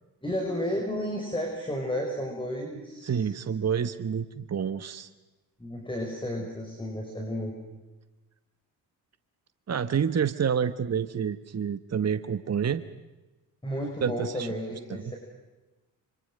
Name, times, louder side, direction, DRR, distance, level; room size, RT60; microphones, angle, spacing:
voice 1, 0.2-3.2 5.6-7.5 13.6-15.2, equal, 10° left, 1 dB, 6.0 m, -32 dB
voice 2, 3.0-5.1 9.7-12.8 14.0-14.5 14.9-15.1, right 7 dB, 35° right, 12 dB, 1.2 m, -28 dB
26.5 x 24.5 x 6.5 m, 1.1 s
hypercardioid pair, 50°, 47 cm